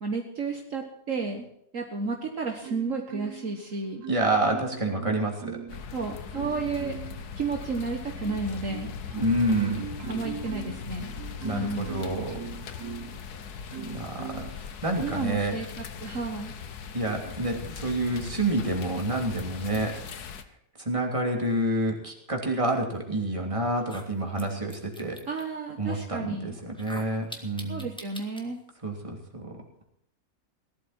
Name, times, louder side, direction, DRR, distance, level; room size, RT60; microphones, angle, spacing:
voice 1, 0.0-1.5 1.7-4.0 5.9-7.0 7.4-8.9 10.1-11.1 11.5-11.9 15.0-16.5 25.3-26.6 27.7-28.6, right 4 dB, 55° right, 2 dB, 1.9 m, -32 dB
Marimba xylophone, 2.6-3.6 4.0-5.8 6.3-7.2 7.7-13.2 13.7-14.6 15.1-15.4, right 7 dB, 80° right, 1.8 m, -41 dB
voice 2, 4.1-5.6 9.2-9.9 11.4-12.4 13.8-15.6 16.9-19.9 20.8-25.2 25.8-27.9 28.8-29.5, right 1 dB, 20° right, 1 dB, 3.0 m, -28 dB
sound 1, 5.7-20.4, left 6 dB, 85° left, 1.7 m, -39 dB
sound 2, 23.2-23.3 23.8-25.4 26.7-28.4, equal, 5° left, 2.0 m, -43 dB
18.5 x 12.5 x 4.5 m, 0.71 s
omnidirectional pair, 1.6 m